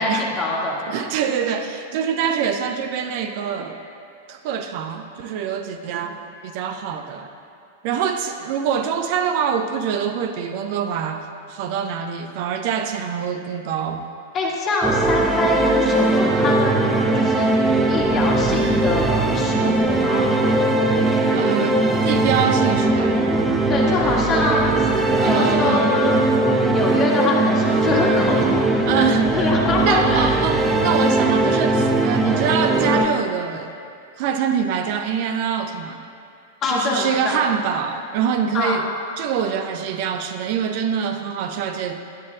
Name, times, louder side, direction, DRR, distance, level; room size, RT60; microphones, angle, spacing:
voice 1, 0.0-0.8 14.3-17.5 17.9-20.3 23.7-24.9 25.3-28.7 28.9-29.1 29.3-30.4 36.6-37.4 38.5-38.8, left 3 dB, 30° left, -3 dB, 1.9 m, -24 dB
voice 2, 0.9-3.8 4.3-7.3 7.8-14.0 19.6-19.8 21.3-23.1 25.2-25.9 28.9-29.5 29.8-33.7 34.2-36.0 36.7-38.9 39.2-42.0, right 7 dB, 45° right, 6 dB, 0.6 m, -25 dB
sound 1, 14.8-33.1, right 2 dB, 15° right, 0.8 m, -19 dB
19.5 x 9.5 x 2.3 m, 2.6 s
figure-of-eight pair, 95°, 0 cm